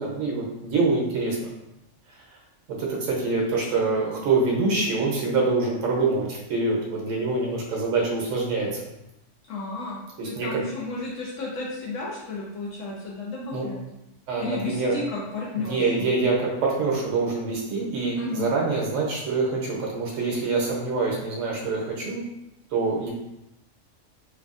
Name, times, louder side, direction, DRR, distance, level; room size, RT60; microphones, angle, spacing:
voice 1, 0.0-1.5 2.8-8.8 10.2-10.6 13.5-13.7 14.3-15.0 15.6-22.2 22.7-23.1, right 3 dB, 70° right, -2 dB, 1.1 m, -25 dB
voice 2, 9.5-13.8 14.4-16.1 18.2-18.6, left 2 dB, 80° left, -4 dB, 1.0 m, -33 dB
3.4 x 2.3 x 2.4 m, 0.90 s
omnidirectional pair, 1.4 m